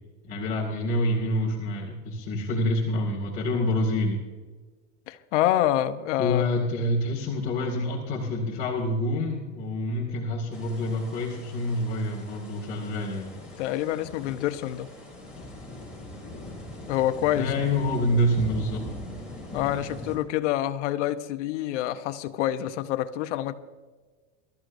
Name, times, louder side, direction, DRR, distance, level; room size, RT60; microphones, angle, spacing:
voice 1, 0.2-4.2 6.2-13.3 17.4-18.8, left 1 dB, 25° left, 2.3 m, -27 dB
voice 2, 5.1-6.4 13.6-14.9 16.9-17.5 19.5-23.5, left 13 dB, 80° left, 1.0 m, -27 dB
sound 1, 10.5-20.2, left 1 dB, 5° right, 3.5 m, -41 dB
23.5 x 13.5 x 2.7 m
supercardioid pair, 165°, 35 cm